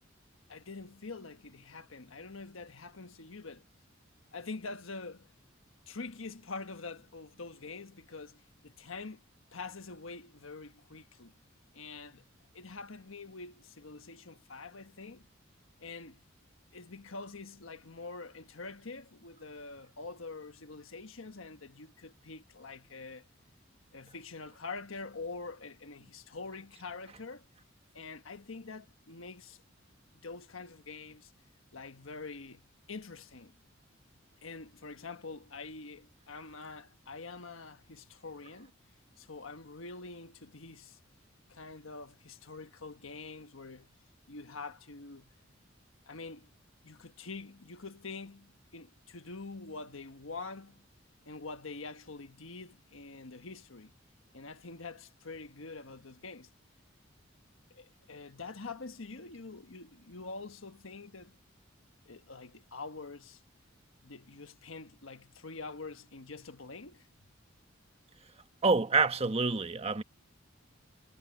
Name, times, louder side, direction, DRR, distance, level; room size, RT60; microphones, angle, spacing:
voice 1, 0.5-3.6 4.3-5.3 5.9-9.2 9.5-11.3 11.7-12.2 12.5-15.3 15.8-16.2 16.7-23.2 23.9-27.4 27.9-29.6 30.2-31.3 31.7-33.6 34.4-38.7 39.2-41.0 41.5-43.9 44.3-45.3 46.1-46.5 46.8-50.9 51.2-53.9 54.3-56.5 57.7-61.4 62.0-63.4 64.0-67.1, left 3 dB, 85° left, 1.3 m, -45 dB
voice 2, 68.6-70.0, right 3 dB, 30° right, 1.2 m, -27 dB
head